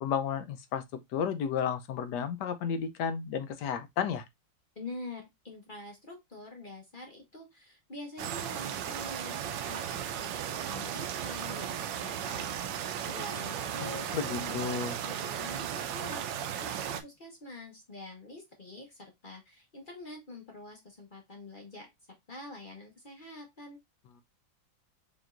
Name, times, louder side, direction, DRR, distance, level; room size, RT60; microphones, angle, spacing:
voice 1, 0.0-0.8 1.1-4.2 14.1-15.0, left 7 dB, 70° left, 1.1 m, -32 dB
voice 2, 4.8-9.4 9.7-12.8 13.1-21.9 22.3-23.8, left 2 dB, 40° left, 0.8 m, -46 dB
sound 1, 8.2-17.0, right 9 dB, 75° right, 1.3 m, -36 dB
5.1 x 3.0 x 2.4 m
omnidirectional pair, 2.1 m